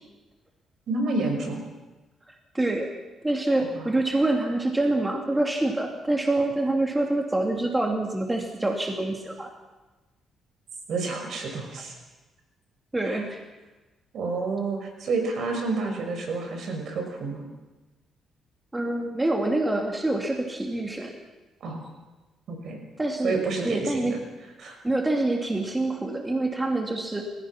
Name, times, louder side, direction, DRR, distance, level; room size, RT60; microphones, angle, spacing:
voice 1, 0.9-1.6 3.7-3.9 10.9-12.0 13.0-13.2 14.1-17.5 21.6-21.8 22.5-22.8 23.2-24.2 24.6-24.8, right 3 dB, 65° right, 3 dB, 5.9 m, -29 dB
voice 2, 2.5-2.9 3.2-9.5 12.9-13.4 18.7-21.1 23.0-24.2 24.8-27.2, right 2 dB, 15° right, 2 dB, 2.8 m, -26 dB
29.0 x 16.0 x 5.9 m, 1.2 s
cardioid pair, 90°, 0 cm